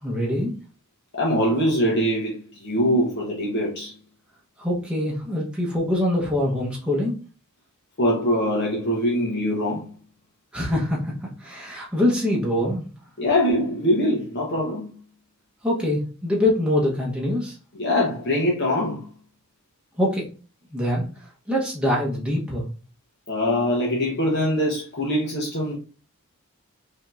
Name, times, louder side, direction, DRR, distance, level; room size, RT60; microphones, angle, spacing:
voice 1, 0.0-0.5 4.6-7.1 10.5-12.8 15.6-17.6 20.0-20.2 20.7-21.1 21.5-22.6, left 1 dB, 5° right, 0.9 m, -24 dB
voice 2, 1.1-3.9 8.0-9.9 13.2-14.9 17.7-19.1 23.3-25.8, equal, 50° left, 1.0 m, -23 dB
5.0 x 2.9 x 2.5 m
head